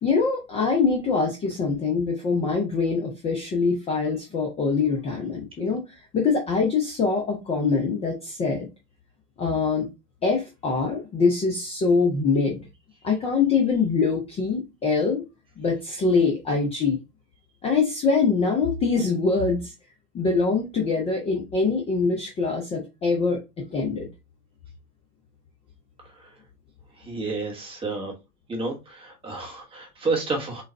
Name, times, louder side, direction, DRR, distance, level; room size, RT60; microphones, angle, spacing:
voice 1, 0.0-5.8 6.1-8.7 9.4-9.9 10.2-12.6 13.0-15.2 15.6-17.0 17.6-19.6 20.1-23.4 23.7-24.1, left 4 dB, 15° left, 1 dB, 0.7 m, -23 dB
voice 2, 27.0-28.1 28.5-30.6, right 3 dB, 10° right, 0 dB, 1.2 m, -30 dB
4.0 x 3.7 x 3.3 m, 0.25 s
hypercardioid pair, 130°, 46 cm